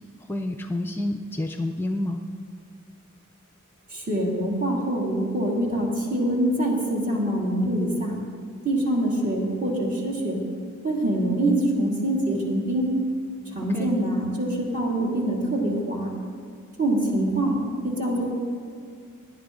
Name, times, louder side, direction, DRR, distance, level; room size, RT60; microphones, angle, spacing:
voice 1, 0.3-2.2 13.7-13.9, left 1 dB, 10° left, 5 dB, 0.4 m, -28 dB
voice 2, 3.9-8.2 8.6-10.4 10.8-12.9 13.5-16.1 16.8-18.3, right 1 dB, 40° right, -2 dB, 2.6 m, -25 dB
17.5 x 10.5 x 3.8 m, 2.2 s
head